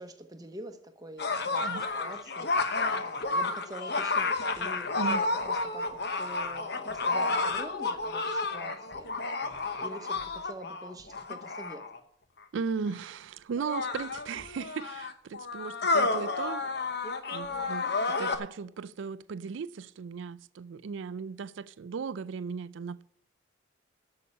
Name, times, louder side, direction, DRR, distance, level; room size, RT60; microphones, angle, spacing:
voice 1, 0.0-11.8 17.5-17.7, right 1 dB, 20° right, 0.9 m, -46 dB
sound 1, 1.2-12.0 12.9-13.0 13.6-18.4, left 3 dB, 55° left, 0.9 m, -31 dB
voice 2, 12.5-16.7 17.3-23.0, right 5 dB, 70° right, 0.4 m, -37 dB
8.5 x 6.7 x 8.5 m
head